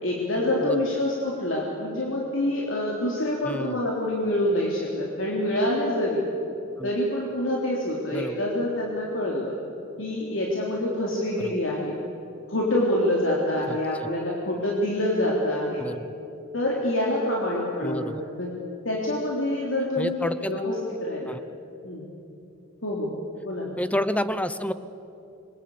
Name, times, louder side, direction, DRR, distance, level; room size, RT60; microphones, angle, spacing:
voice 1, 0.0-6.2 6.8-9.6 10.0-12.0 12.5-15.9 16.5-18.6 18.8-20.8 21.0-21.3 21.8-22.0 22.8-23.1 23.5-23.7, left 1 dB, 60° left, -3 dB, 3.6 m, -26 dB
voice 2, 3.4-3.8 6.8-6.9 8.1-8.4 11.4-11.6 13.7-14.1 15.8-16.1 17.8-18.2 20.0-20.6 21.3-21.4 23.8-24.7, left 1 dB, 5° left, 13 dB, 0.8 m, -30 dB
27.0 x 23.0 x 8.7 m, 2.8 s
head